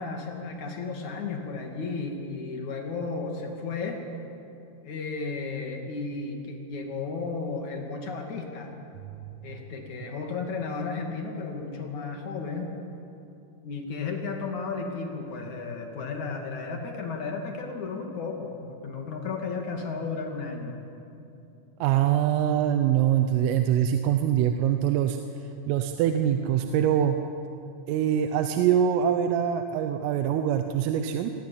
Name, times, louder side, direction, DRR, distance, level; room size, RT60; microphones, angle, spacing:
voice 1, 0.0-4.0 4.8-8.7 9.4-12.7 13.6-20.7, left 4 dB, 45° left, 2 dB, 3.1 m, -34 dB
voice 2, 21.8-25.2 25.7-27.2 27.9-31.3, right 10 dB, 80° right, 7 dB, 3.5 m, -24 dB
26.0 x 22.5 x 8.7 m, 2.8 s
omnidirectional pair, 5.9 m